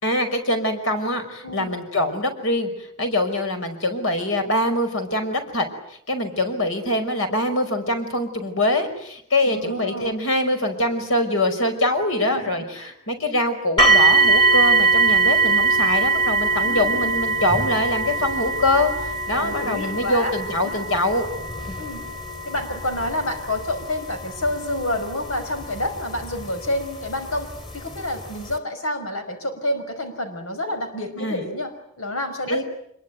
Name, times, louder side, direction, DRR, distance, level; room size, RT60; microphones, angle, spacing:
voice 1, 0.0-21.3 21.7-21.8 31.2-31.4 32.5-32.6, left 1 dB, 70° left, 6 dB, 5.5 m, -24 dB
voice 2, 9.5-10.1 12.2-12.9 16.6-17.1 19.3-20.3 20.6-20.8 21.8-22.0 22.4-32.6, left 1 dB, 90° left, 7 dB, 5.4 m, -29 dB
sound 1, 13.8-26.7 27.5-27.6 28.2-28.3, right 4 dB, 25° left, 3.0 m, -21 dB
26.0 x 23.0 x 9.4 m, 0.72 s
head